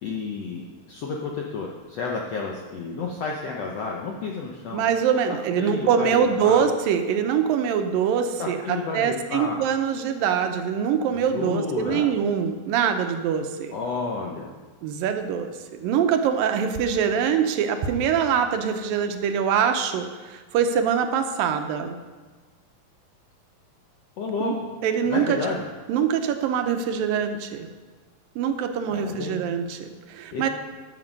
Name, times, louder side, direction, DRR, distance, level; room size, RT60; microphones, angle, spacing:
voice 1, 0.0-4.8 5.3-6.6 8.4-9.6 11.1-12.1 13.7-14.5 24.2-24.5 25.1-25.7 28.9-29.4 30.3-30.5, left 4 dB, 80° left, -1 dB, 1.4 m, -31 dB
voice 2, 4.7-13.7 14.8-22.0 24.4-24.5 24.8-25.4 25.9-27.7 28.4-30.5, right 7 dB, 75° right, 6 dB, 2.4 m, -24 dB
12.5 x 7.6 x 5.3 m, 1.4 s
omnidirectional pair, 4.3 m